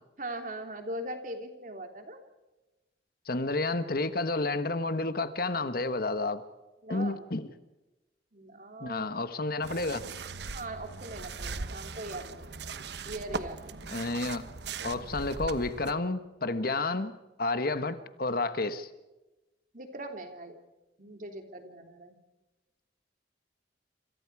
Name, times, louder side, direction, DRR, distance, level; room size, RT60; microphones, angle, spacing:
voice 1, 0.2-2.2 6.8-7.3 8.3-9.1 10.5-12.6 13.1-13.8 19.7-20.6 21.0-22.2, right 1 dB, 45° right, 5 dB, 3.3 m, -40 dB
voice 2, 3.3-6.4 6.9-7.5 8.8-10.0 13.9-14.4 14.8-17.1 17.4-18.9, left 2 dB, 55° left, 11 dB, 1.4 m, -30 dB
sound 1, 9.6-15.9, right 4 dB, 65° right, 1.1 m, -39 dB
27.5 x 27.0 x 4.9 m, 1.1 s
head